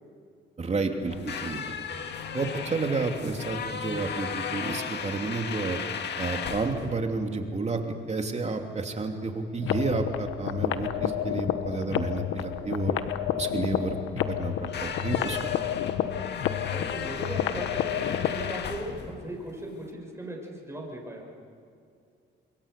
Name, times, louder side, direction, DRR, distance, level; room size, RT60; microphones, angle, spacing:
voice 1, 0.6-1.6 2.3-5.8 6.2-7.8 8.1-12.9 13.4-14.0 14.3-15.5, right 3 dB, 35° right, 4 dB, 2.8 m, -30 dB
sound 1, 1.0-19.9, left 6 dB, 60° left, 2.0 m, -37 dB
sound 2, 9.6-18.6, left 10 dB, 85° left, 1.2 m, -30 dB
voice 2, 16.7-21.4, right 1 dB, 15° right, -1 dB, 6.9 m, -38 dB
27.0 x 22.5 x 6.9 m, 2.4 s
cardioid pair, 90°, 20 cm